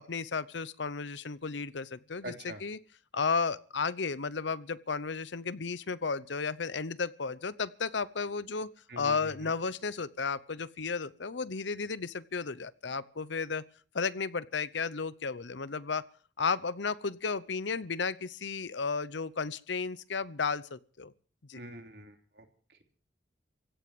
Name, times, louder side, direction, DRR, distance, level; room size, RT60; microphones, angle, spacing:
voice 1, 0.0-2.8 3.1-13.6 13.9-16.0 16.4-21.1 21.5-21.6, left 5 dB, 75° left, 0.8 m, -33 dB
voice 2, 2.2-2.6 8.9-9.5 21.5-22.8, right 1 dB, 60° right, 3.1 m, -45 dB
16.5 x 9.3 x 9.5 m
head